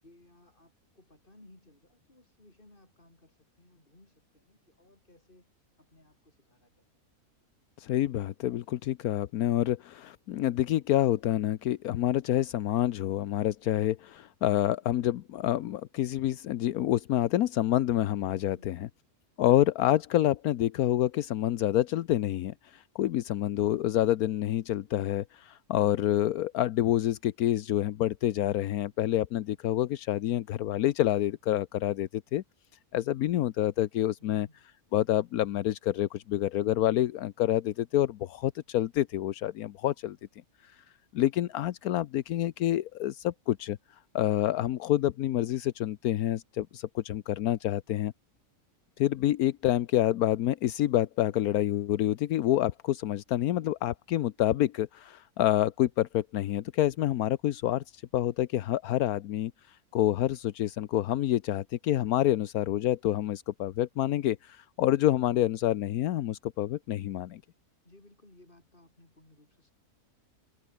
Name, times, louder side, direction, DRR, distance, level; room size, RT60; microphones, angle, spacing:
voice 1, 0.0-6.9 18.5-18.8 34.2-34.7 41.4-41.8 67.8-69.7, left 1 dB, 35° left, 5.5 m, -60 dB
voice 2, 7.8-18.9 19.4-32.4 32.9-34.5 34.9-40.2 40.6-40.8 41.1-48.1 49.0-67.4, left 13 dB, 80° left, 1.2 m, -28 dB
omnidirectional pair, 1.6 m